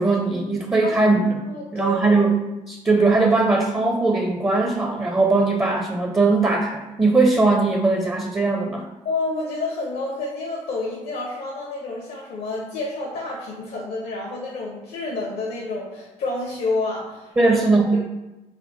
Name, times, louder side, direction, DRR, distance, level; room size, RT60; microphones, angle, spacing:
voice 1, 0.0-1.4 1.7-8.8 17.4-18.0, right 3 dB, 15° right, 3 dB, 0.5 m, -20 dB
voice 2, 0.8-1.1 1.4-2.2 9.0-18.0, left 2 dB, 70° left, -3 dB, 0.6 m, -29 dB
3.5 x 2.2 x 3.8 m, 1.0 s
hypercardioid pair, 45°, 17 cm